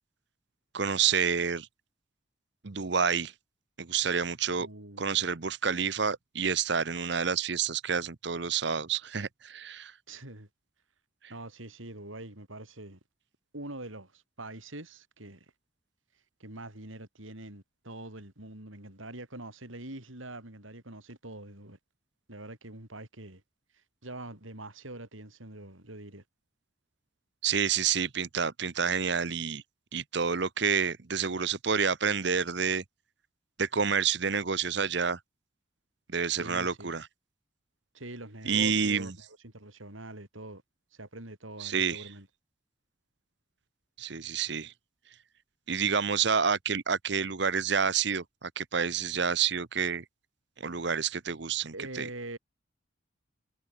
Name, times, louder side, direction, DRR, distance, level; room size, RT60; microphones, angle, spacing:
voice 1, 0.7-1.7 2.6-3.3 3.8-4.7 5.0-9.9 27.4-29.6 29.9-32.8 33.6-35.2 36.1-37.1 38.5-39.1 41.6-42.1 44.0-44.7 45.7-50.0 50.6-52.1, right 6 dB, 55° right, 0.9 m, -29 dB
voice 2, 4.6-5.3 10.1-10.5 11.3-13.0 13.5-15.5 16.4-21.8 22.3-23.4 23.7-26.2 36.3-36.9 37.9-40.6 40.9-42.3 51.7-52.4, right 2 dB, 80° right, 6.0 m, -44 dB
head